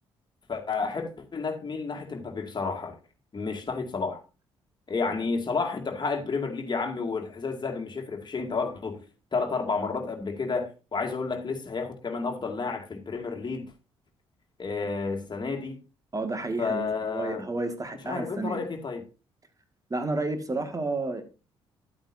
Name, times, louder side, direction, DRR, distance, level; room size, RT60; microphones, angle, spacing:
voice 1, 0.5-3.0 3.3-4.2 4.9-9.0 9.3-13.7 14.6-15.8 16.6-17.4 18.0-19.0, left 4 dB, 35° left, 2.2 m, -31 dB
voice 2, 16.1-18.7 19.9-21.2, right 2 dB, 25° right, 2.0 m, -31 dB
11.5 x 8.8 x 2.7 m
hypercardioid pair, 45°, 13 cm